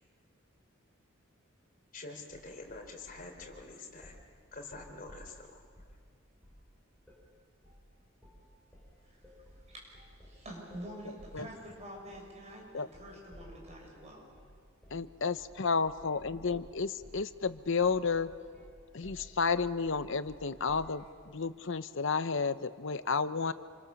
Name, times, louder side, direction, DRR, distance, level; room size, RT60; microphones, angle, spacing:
voice 1, 1.9-4.1 4.5-5.6, left 3 dB, 40° left, 2 dB, 3.8 m, -46 dB
sound 1, 2.3-3.6 4.0-4.3 4.6-6.0 6.4-6.7 7.0-7.3 7.6-7.9 8.2-8.5 8.7-13.9 14.3-14.5 14.8-15.1 15.4-15.6 15.8-21.0, equal, 5° left, 7.6 m, -55 dB
voice 2, 9.7-14.3, right 1 dB, 35° right, -1 dB, 6.8 m, -47 dB
voice 3, 14.9-18.3 18.9-23.5, left 5 dB, 65° left, 12 dB, 0.9 m, -31 dB
28.0 x 26.5 x 7.1 m, 2.1 s
head